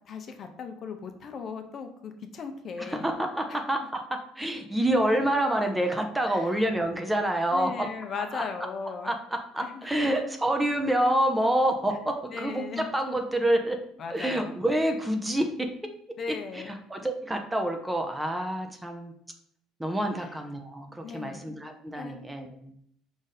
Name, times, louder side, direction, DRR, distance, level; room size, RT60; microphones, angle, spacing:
voice 1, 0.1-3.1 3.5-3.9 6.3-6.6 7.5-9.1 9.6-10.2 11.9-12.9 14.0-14.5 16.2-16.7 20.2-20.3 21.0-21.4 21.9-22.2, left 5 dB, 45° left, 6 dB, 0.6 m, -38 dB
voice 2, 2.9-7.7 8.3-8.4 9.0-13.8 14.1-15.7 16.9-19.1 19.8-22.7, right 1 dB, 10° right, 4 dB, 0.6 m, -27 dB
5.0 x 2.6 x 4.0 m, 0.70 s
cardioid pair, 115°, 0 cm